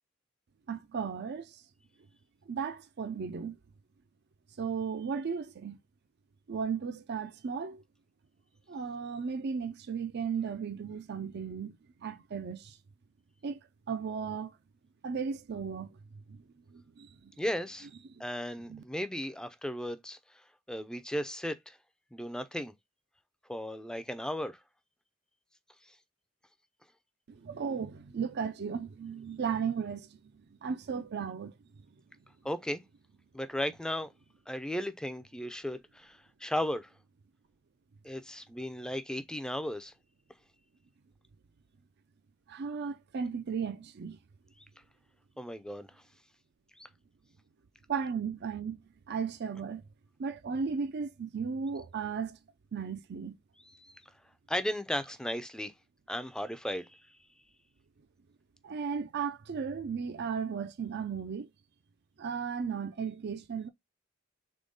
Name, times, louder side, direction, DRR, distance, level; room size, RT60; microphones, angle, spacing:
voice 1, 0.7-1.6 2.5-3.6 4.6-5.8 6.5-7.8 8.7-12.8 13.4-13.6 13.9-14.6 15.0-16.4 16.7-17.3 18.1-18.2 18.7-18.8 27.3-30.3 30.6-31.6 42.5-44.2 47.9-48.8 49.1-49.8 50.2-52.4 52.7-53.4 58.6-61.5 62.2-63.7, right 6 dB, 55° right, 0.5 m, -35 dB
voice 2, 17.4-17.9 18.2-20.2 20.7-21.8 22.1-22.7 23.5-24.6 32.4-32.8 33.3-34.1 34.5-36.9 38.0-39.9 45.4-45.9 46.8-46.9 53.7-54.0 54.5-55.7 56.1-57.0, equal, 5° left, 0.5 m, -35 dB
3.6 x 3.5 x 3.8 m
head